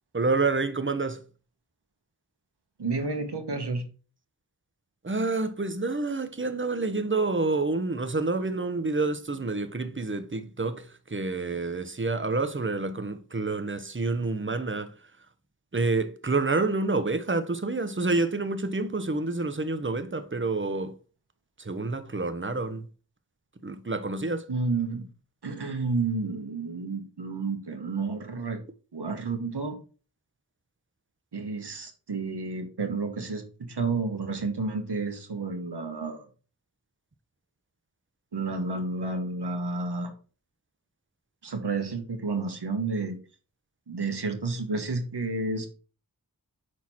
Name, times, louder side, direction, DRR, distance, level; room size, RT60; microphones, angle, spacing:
voice 1, 0.1-1.2 5.0-14.9 15.7-20.9 21.6-22.9 23.6-24.5, right 3 dB, 30° right, 0.9 m, -28 dB
voice 2, 2.8-3.8 24.5-25.1 25.4-28.6 28.9-29.8 31.3-36.2 38.3-40.1 41.4-43.2 43.9-45.7, right 3 dB, 90° right, 1.4 m, -31 dB
6.3 x 4.5 x 4.3 m
wide cardioid pair, 45°, 39 cm